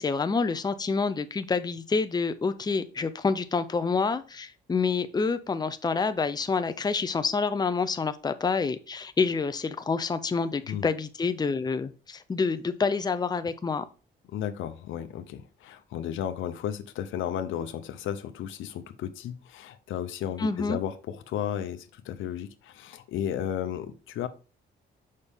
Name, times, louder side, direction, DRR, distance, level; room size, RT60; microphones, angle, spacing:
voice 1, 0.0-13.8 20.4-20.8, left 4 dB, 20° left, 0.6 m, -27 dB
voice 2, 14.3-24.3, left 10 dB, 80° left, 0.7 m, -34 dB
6.5 x 5.5 x 3.5 m
cardioid pair, 90°, 20 cm